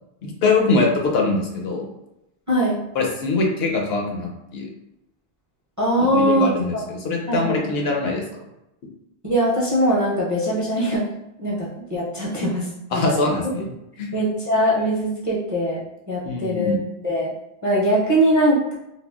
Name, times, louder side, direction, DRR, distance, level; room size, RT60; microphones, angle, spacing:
voice 1, 0.2-1.8 2.9-4.7 6.1-8.2 12.9-13.7 14.0-14.1 16.2-16.8, left 3 dB, 70° left, 0 dB, 0.8 m, -22 dB
voice 2, 2.5-2.8 5.8-6.8 7.3-7.7 9.2-11.0 11.4-13.3 14.1-15.8 16.1-16.8 17.0-17.3 17.6-18.7, equal, 25° right, -7 dB, 0.5 m, -21 dB
3.5 x 2.0 x 2.3 m, 0.88 s
omnidirectional pair, 1.1 m